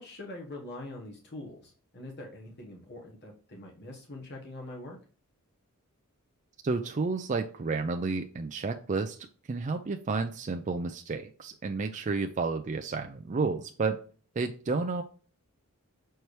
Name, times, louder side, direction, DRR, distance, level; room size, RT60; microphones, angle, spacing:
voice 1, 0.0-5.0, left 2 dB, 50° left, 0 dB, 1.3 m, -43 dB
voice 2, 6.6-9.2 9.5-14.0 14.4-15.0, right 4 dB, 35° right, 5 dB, 0.4 m, -31 dB
6.6 x 4.5 x 3.2 m, 0.41 s
head